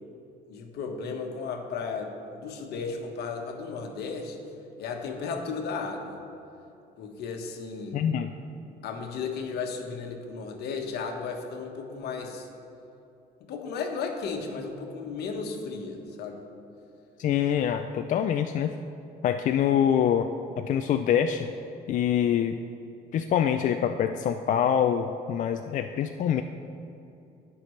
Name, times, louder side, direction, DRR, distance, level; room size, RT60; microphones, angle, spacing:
voice 1, 0.5-4.4 4.8-6.2 7.0-8.0 8.8-12.5 13.4-16.4, left 5 dB, 75° left, 3 dB, 1.3 m, -34 dB
voice 2, 7.9-8.3 17.2-18.7 19.2-20.3 20.6-21.5 21.9-22.6 23.1-26.4, left 9 dB, 50° left, 7 dB, 0.4 m, -25 dB
18.0 x 6.0 x 3.2 m, 2.8 s
cardioid pair, 110°, 17 cm